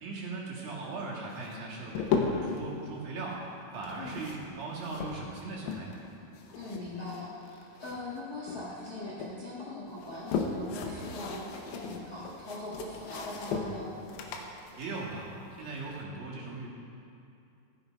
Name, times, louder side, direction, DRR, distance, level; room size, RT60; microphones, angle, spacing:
voice 1, 0.0-3.4 3.7-5.9 14.8-16.7, right 3 dB, 75° right, -5 dB, 3.5 m, -39 dB
sound 1, 1.3-2.6 3.7-6.1 6.4-8.2 8.5-9.3 9.9-15.9, left 5 dB, 90° left, 2.6 m, -36 dB
voice 2, 6.5-13.9, left 2 dB, 45° left, -7 dB, 1.2 m, -41 dB
14.5 x 7.2 x 5.1 m, 2.6 s
omnidirectional pair, 4.2 m